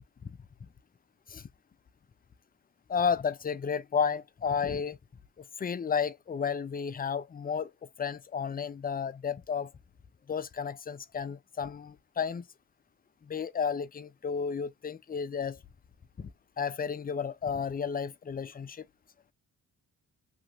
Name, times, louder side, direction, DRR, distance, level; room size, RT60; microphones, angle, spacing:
voice 1, 2.9-5.0 5.4-7.7 8.0-9.7 10.3-12.4 13.2-15.6 16.2-16.3 16.6-18.9, left 6 dB, 25° left, 0.4 m, -32 dB
2.8 x 2.6 x 2.6 m
cardioid pair, 65°, 36 cm